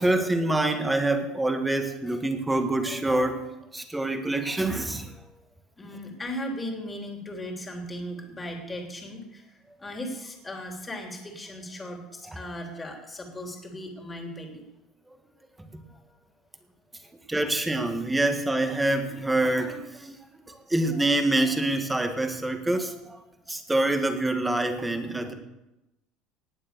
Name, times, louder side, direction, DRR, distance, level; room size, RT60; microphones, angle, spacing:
voice 1, 0.0-3.4 3.7-5.1 15.6-15.8 17.3-20.2 20.5-23.2 23.5-25.3, right 2 dB, 10° right, 6 dB, 1.7 m, -26 dB
voice 2, 5.1-5.4 5.8-14.7 15.9-16.0 17.0-17.1, equal, 15° left, 2 dB, 3.2 m, -37 dB
19.0 x 7.2 x 6.8 m, 0.94 s
cardioid pair, 125°, 0 cm